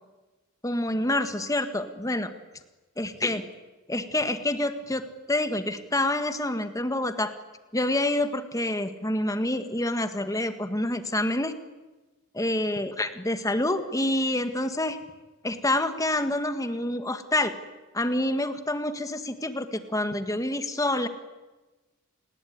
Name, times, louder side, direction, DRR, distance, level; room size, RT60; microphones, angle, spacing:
voice 1, 0.6-2.3 3.0-3.4 3.9-7.3 7.7-11.5 12.3-15.0 15.4-17.5 17.9-21.1, left 1 dB, 15° left, 9 dB, 1.8 m, -27 dB
29.0 x 20.5 x 9.6 m, 1.2 s
head